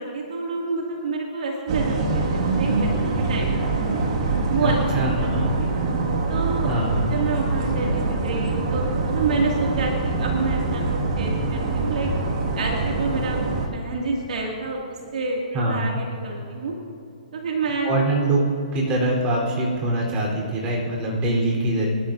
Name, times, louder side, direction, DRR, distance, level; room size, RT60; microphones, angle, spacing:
voice 1, 0.0-3.7 4.5-4.9 5.1-5.3 5.6-5.7 6.3-6.7 7.0-12.1 12.5-14.8 15.1-16.7 17.3-18.1, right 3 dB, 65° right, -1 dB, 2.4 m, -28 dB
sound 1, 1.7-13.7, right 3 dB, 45° right, 2.0 m, -24 dB
voice 2, 4.6-5.5 6.7-7.1 15.5-15.9 17.8-18.4 18.7-21.9, right 1 dB, 25° right, -3 dB, 4.0 m, -23 dB
26.5 x 12.5 x 2.7 m, 2.7 s
hypercardioid pair, 145°, 4 cm